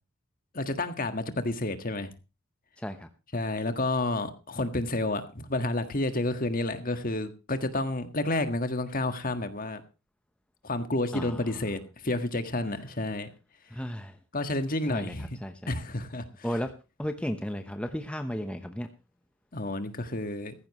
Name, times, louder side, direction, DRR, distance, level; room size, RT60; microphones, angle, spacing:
voice 1, 0.5-2.1 3.3-9.8 10.6-13.3 14.3-15.4 15.7-16.2 19.5-20.5, left 2 dB, 40° left, 1.7 m, -30 dB
voice 2, 2.8-3.1 11.1-11.6 13.7-14.2 14.9-15.1 15.4-15.8 16.4-16.7 17.0-18.9, equal, 5° left, 0.9 m, -34 dB
16.0 x 15.0 x 3.1 m
head